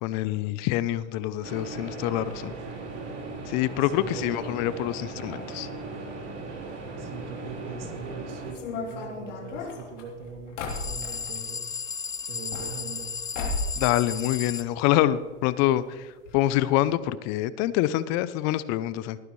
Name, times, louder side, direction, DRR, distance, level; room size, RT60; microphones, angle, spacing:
voice 1, 0.0-2.5 3.5-5.7 13.7-19.2, left 14 dB, 50° left, 16 dB, 0.7 m, -26 dB
sound 1, 1.4-8.5, right 3 dB, 45° right, 3.6 m, -38 dB
voice 2, 3.8-4.3 7.0-11.9 12.3-13.1, right 4 dB, 75° right, 4 dB, 2.4 m, -41 dB
sound 2, 8.5-11.4 12.3-13.1 13.3-13.8 14.1-14.9 15.2-15.3 15.5-15.6 16.3-16.4 16.7-16.8, left 3 dB, 85° left, 3.2 m, -34 dB
sound 3, 10.7-14.7, left 6 dB, 10° left, 0.4 m, -34 dB
18.0 x 9.7 x 3.2 m, 1.4 s
hypercardioid pair, 105°, 36 cm